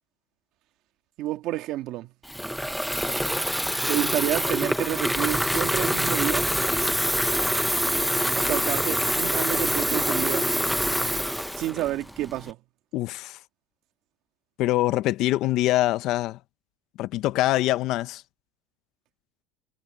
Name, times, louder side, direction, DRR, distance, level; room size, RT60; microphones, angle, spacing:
voice 1, 1.2-2.1 3.9-6.5 8.4-10.5 11.6-12.6, right 15 dB, 50° right, 2.0 m, -29 dB
Water tap faucet / Fill (with liquid), 2.2-12.5, equal, ahead, 0.9 m, -25 dB
voice 2, 12.9-13.4 14.6-16.4 17.0-18.2, left 16 dB, 50° left, 0.9 m, -24 dB
cardioid pair, 145°, 0 cm